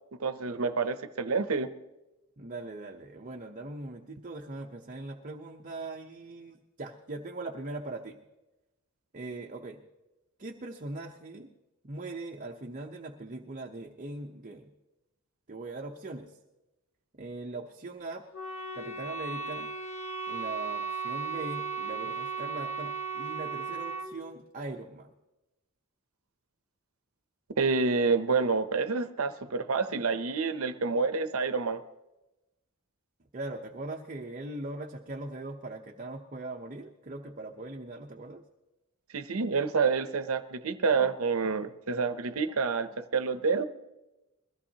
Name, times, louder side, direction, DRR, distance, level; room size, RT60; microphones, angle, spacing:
voice 1, 0.2-1.7 27.6-31.8 39.1-43.6, right 4 dB, 80° right, 11 dB, 0.7 m, -28 dB
voice 2, 2.4-8.2 9.1-9.8 10.4-11.5 11.8-14.7 15.5-16.4 17.2-18.2 18.7-19.7 20.3-25.1 33.3-38.4, right 2 dB, 40° right, 2 dB, 0.8 m, -40 dB
Wind instrument woodwind instrument, 18.3-24.1, right 5 dB, 70° left, 1.4 m, -36 dB
21.5 x 15.5 x 2.9 m, 1.0 s
head